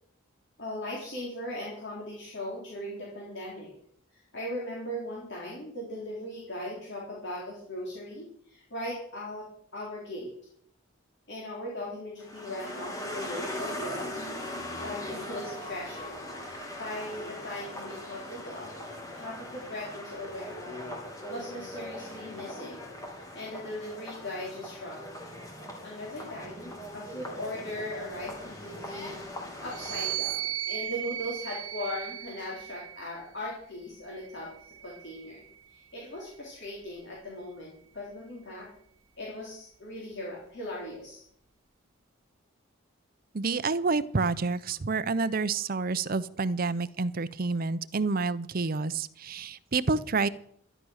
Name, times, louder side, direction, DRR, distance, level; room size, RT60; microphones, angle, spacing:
voice 1, 0.6-3.7 4.1-9.5 9.7-10.3 11.3-14.2 14.8-16.2 16.4-18.7 19.1-21.0 21.3-25.0 25.8-34.5 34.8-35.4 35.7-38.7 39.2-41.2, left 1 dB, 55° left, -4 dB, 3.7 m, -39 dB
sound 1, 12.2-30.2, left 1 dB, 15° left, 2.6 m, -40 dB
sound 2, 29.6-33.2 34.1-35.7, right 13 dB, 80° right, 0.9 m, -37 dB
voice 2, 43.3-50.3, right 4 dB, 45° right, 16 dB, 0.6 m, -28 dB
12.5 x 11.0 x 6.4 m, 0.65 s
head